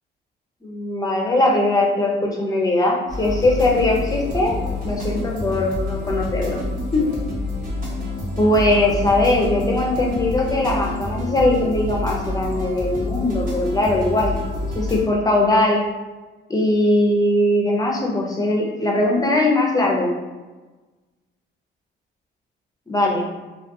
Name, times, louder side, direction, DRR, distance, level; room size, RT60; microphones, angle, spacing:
voice 1, 0.6-4.6 4.8-6.6 6.9-7.1 8.4-14.3 14.7-15.8 16.5-20.1 22.9-23.3, left 1 dB, 20° left, -1 dB, 0.5 m, -20 dB
sound 1, 3.1-15.0, left 2 dB, 45° right, 0.9 m, -28 dB
2.4 x 2.2 x 2.5 m, 1.2 s
cardioid pair, 90°, 20 cm